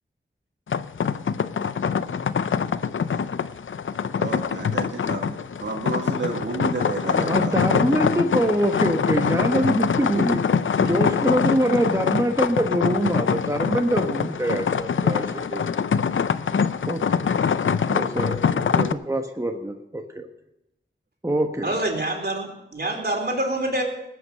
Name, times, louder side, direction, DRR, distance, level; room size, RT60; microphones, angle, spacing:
sound 1, 0.7-18.9, left 6 dB, 85° left, 0.5 m, -24 dB
voice 1, 4.2-7.6, right 3 dB, 70° right, 1 dB, 1.8 m, -31 dB
voice 2, 7.1-10.4 10.8-15.6 16.9-17.2 17.6-20.3 21.2-21.8, right 1 dB, 15° right, 4 dB, 1.2 m, -24 dB
voice 3, 21.6-23.8, right 1 dB, 55° right, 1 dB, 3.7 m, -26 dB
19.5 x 8.4 x 6.5 m, 0.90 s
wide cardioid pair, 60°, 20 cm